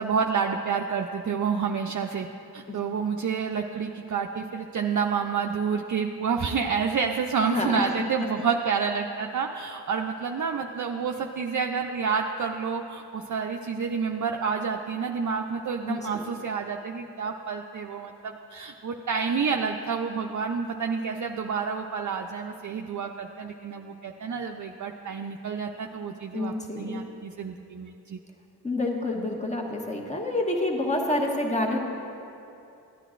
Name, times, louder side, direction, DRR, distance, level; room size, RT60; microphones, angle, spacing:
voice 1, 0.0-2.3 2.5-28.2, right 6 dB, 50° right, 3 dB, 0.5 m, -29 dB
voice 2, 7.4-7.9 15.9-16.0 26.3-27.0 28.6-31.8, left 2 dB, 15° left, 0 dB, 1.3 m, -28 dB
14.5 x 9.8 x 2.5 m, 2.8 s
cardioid pair, 45°, 41 cm